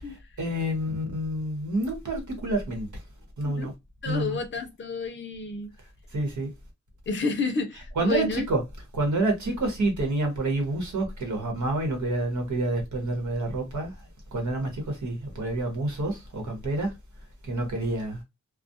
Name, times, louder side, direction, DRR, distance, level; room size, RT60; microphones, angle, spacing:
voice 1, 0.1-3.0 3.4-3.7 4.0-4.4 6.1-6.5 8.0-8.6 8.9-16.9 17.4-18.2, right 2 dB, 75° right, 1.0 m, -28 dB
voice 2, 4.0-5.7 7.1-8.4, left 4 dB, 40° left, 0.6 m, -30 dB
2.4 x 2.0 x 2.6 m
wide cardioid pair, 115°, 29 cm